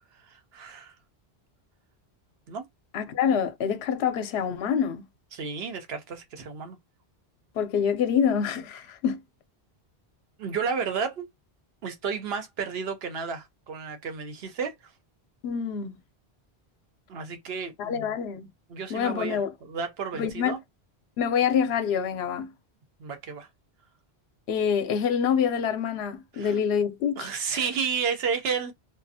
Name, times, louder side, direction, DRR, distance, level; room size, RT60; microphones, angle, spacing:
voice 1, 0.3-0.9 2.5-2.6 5.3-6.8 10.4-11.3 11.8-14.7 17.1-18.1 18.7-20.6 23.0-23.5 26.3-26.6 27.2-28.7, right 6 dB, 70° right, 0.9 m, -32 dB
voice 2, 2.9-5.0 7.5-9.2 15.4-16.0 17.8-18.5 18.9-19.5 20.1-20.6 21.2-22.5 24.5-27.6, left 7 dB, 80° left, 0.8 m, -26 dB
2.4 x 2.3 x 2.6 m
omnidirectional pair, 1.1 m